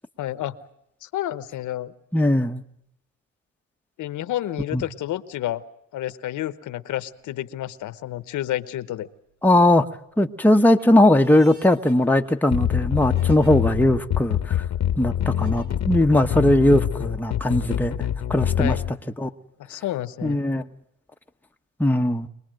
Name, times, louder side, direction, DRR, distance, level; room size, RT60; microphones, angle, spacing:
voice 1, 0.2-0.6 1.0-1.9 4.0-5.6 5.9-9.1 13.5-13.7 18.6-18.8 19.6-20.4, left 13 dB, 80° left, 14 dB, 1.1 m, -30 dB
voice 2, 2.1-2.6 4.7-4.8 9.4-9.9 10.2-14.6 15.0-18.8 19.2-19.3 20.2-20.6 21.8-22.3, left 1 dB, 5° left, 5 dB, 1.0 m, -19 dB
sound 1, 7.0-7.4 8.0-8.6 9.1-9.8 10.2-13.5 14.1-14.2 15.2-15.7, right 3 dB, 80° right, 4.2 m, -51 dB
sound 2, 12.5-18.9, left 10 dB, 60° left, 1.0 m, -25 dB
24.5 x 19.5 x 7.7 m, 0.78 s
cardioid pair, 90°, 30 cm